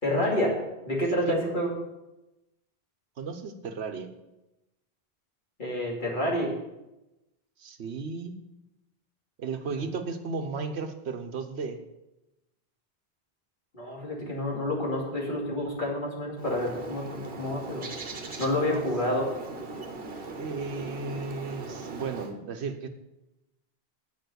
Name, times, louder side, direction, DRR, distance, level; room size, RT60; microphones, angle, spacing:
voice 1, 0.0-0.6 0.8-1.7 5.6-6.5 13.7-17.9 18.4-19.2, left 1 dB, 50° left, -3 dB, 2.8 m, -28 dB
voice 2, 3.2-4.1 7.6-8.3 9.4-11.8 18.7-18.8 20.3-22.9, right 4 dB, 85° right, 7 dB, 1.2 m, -34 dB
Bird, 16.4-22.3, right 3 dB, 65° right, 1.4 m, -40 dB
9.2 x 5.6 x 7.9 m, 0.96 s
omnidirectional pair, 1.1 m